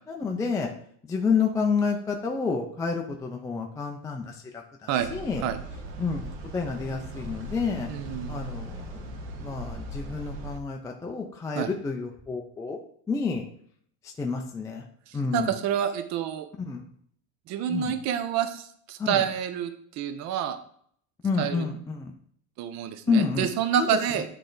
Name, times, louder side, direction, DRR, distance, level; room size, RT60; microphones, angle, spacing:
voice 1, 0.1-0.7 1.0-5.4 6.0-7.9 8.3-12.8 13.1-13.4 14.0-14.8 15.1-15.6 16.6-16.8 17.7-18.0 19.0-19.2 21.2-22.1 23.1-23.5 23.8-23.9, left 5 dB, 10° left, 1 dB, 0.3 m, -29 dB
sound 1, 5.0-10.6, right 1 dB, 75° right, 1.2 m, -38 dB
voice 2, 7.9-8.4 11.6-11.7 15.1-16.5 17.5-19.7 20.0-20.6 21.4-21.6 22.6-24.2, right 9 dB, 50° right, 9 dB, 0.6 m, -28 dB
8.5 x 3.3 x 3.8 m, 0.62 s
cardioid pair, 150°, 36 cm